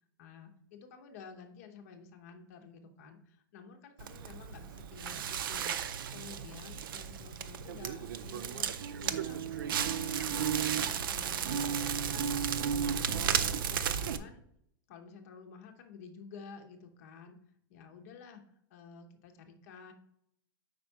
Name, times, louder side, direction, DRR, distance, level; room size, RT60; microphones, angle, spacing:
voice 1, 0.2-5.8 6.1-8.7 9.0-14.4 14.9-17.4 17.7-18.4 18.7-19.9, left 6 dB, 45° left, 4 dB, 0.9 m, -51 dB
Crackle, 4.0-14.2, right 8 dB, 90° right, 0.5 m, -34 dB
5.2 x 4.2 x 4.5 m, 0.72 s
supercardioid pair, 180°, 11 cm